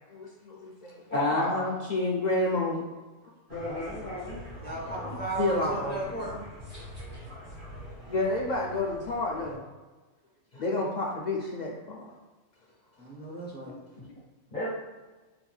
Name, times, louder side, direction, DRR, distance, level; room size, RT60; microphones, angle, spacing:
voice 1, 0.1-2.8 4.7-6.0 8.1-9.6 10.5-12.1, left 2 dB, 60° left, -2 dB, 0.5 m, -30 dB
voice 2, 1.1-1.6 3.5-4.4 6.7-6.8 14.0-14.1 14.5-14.7, left 1 dB, 40° left, -10 dB, 1.5 m, -34 dB
sound 1, 3.5-9.6, equal, 55° right, 1.5 m, -44 dB
voice 3, 4.6-6.4 13.0-13.7, right 2 dB, 10° left, -5 dB, 0.7 m, -35 dB
4.3 x 3.1 x 2.3 m, 1.2 s
omnidirectional pair, 1.3 m